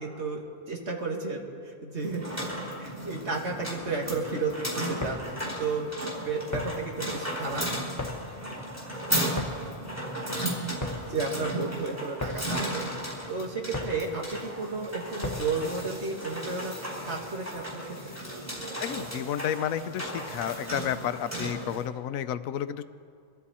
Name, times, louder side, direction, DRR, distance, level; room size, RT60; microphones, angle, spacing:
voice 1, 0.0-2.3 2.8-5.9 6.2-7.7 11.1-12.9 13.3-16.8 17.0-18.2, right 3 dB, 55° right, 0 dB, 2.1 m, -33 dB
sound 1, 2.0-21.8, right 1 dB, 10° right, 3.4 m, -35 dB
sound 2, 5.0-15.7, left 2 dB, 15° left, 1.2 m, -39 dB
voice 2, 18.8-22.8, left 9 dB, 85° left, 13 dB, 1.0 m, -31 dB
23.5 x 13.5 x 4.2 m, 2.3 s
omnidirectional pair, 1.4 m